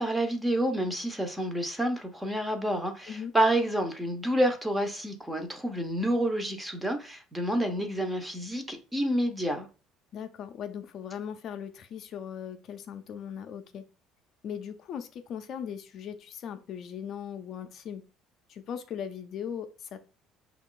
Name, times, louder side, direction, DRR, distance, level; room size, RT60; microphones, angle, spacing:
voice 1, 0.0-9.7, right 1 dB, 5° right, 0.6 m, -29 dB
voice 2, 10.1-13.8 14.4-18.0 18.5-20.0, left 8 dB, 45° left, 0.4 m, -39 dB
5.6 x 2.4 x 3.7 m
cardioid pair, 150°, 0 cm